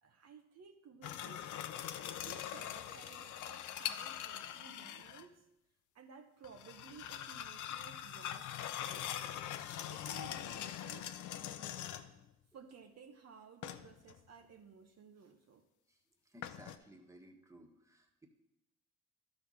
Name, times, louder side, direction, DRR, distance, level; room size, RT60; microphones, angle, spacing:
voice 1, 0.0-5.4 5.9-9.4 9.9-11.1 12.5-15.7, right 6 dB, 55° right, 5 dB, 1.0 m, -57 dB
sound 1, 1.0-5.3 6.4-12.2 13.6-14.2 16.4-16.8, left 11 dB, 80° left, 0.7 m, -43 dB
voice 2, 16.2-18.3, right 1 dB, 10° right, 2 dB, 1.5 m, -58 dB
12.0 x 4.2 x 6.4 m, 0.90 s
cardioid pair, 90°, 30 cm